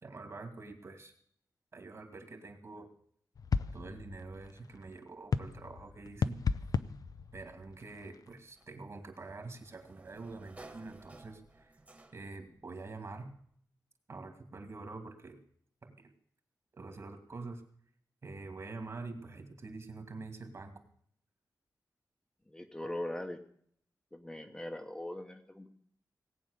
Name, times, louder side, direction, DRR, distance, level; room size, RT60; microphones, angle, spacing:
voice 1, 0.0-1.1 1.7-2.9 3.7-6.4 7.3-11.8 12.1-13.3 14.1-15.4 15.8-16.1 16.8-17.6 18.2-20.8, right 3 dB, 45° right, 6 dB, 2.4 m, -46 dB
sound 1, 3.3-8.4, left 5 dB, 65° left, 0.7 m, -36 dB
Sliding door, 8.6-12.5, right 2 dB, 20° right, 1.7 m, -56 dB
voice 2, 22.5-23.4 24.1-25.7, left 1 dB, 10° left, 4 dB, 1.0 m, -40 dB
18.5 x 9.1 x 6.7 m, 0.63 s
wide cardioid pair, 160°, 7 cm